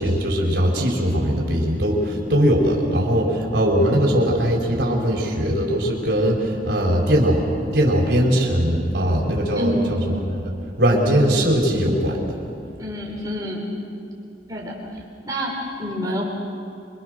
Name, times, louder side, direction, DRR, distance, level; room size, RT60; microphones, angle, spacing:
voice 1, 0.0-7.5 7.7-10.5 10.8-12.4, equal, 70° right, -1 dB, 4.7 m, -20 dB
voice 2, 9.5-10.0 12.8-13.7 14.5-14.8 15.3-16.2, equal, 20° right, -2 dB, 4.9 m, -27 dB
27.5 x 25.0 x 6.6 m, 2.5 s
head